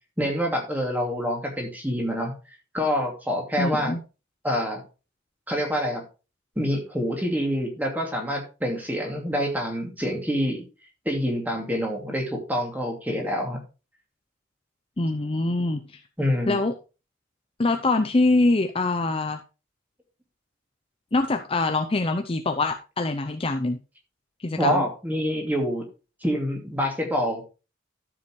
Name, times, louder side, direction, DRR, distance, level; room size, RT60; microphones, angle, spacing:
voice 1, 0.2-2.3 2.7-3.9 4.4-4.8 5.5-6.0 6.6-10.6 11.0-13.6 16.2-16.6 24.6-25.8 26.2-27.4, equal, 10° right, 1 dB, 2.6 m, -26 dB
voice 2, 3.6-4.0 15.0-16.0 16.5-16.7 17.6-19.4 21.1-23.8 24.4-24.8, left 2 dB, 30° left, 6 dB, 0.6 m, -24 dB
12.5 x 7.1 x 3.2 m, 0.31 s
head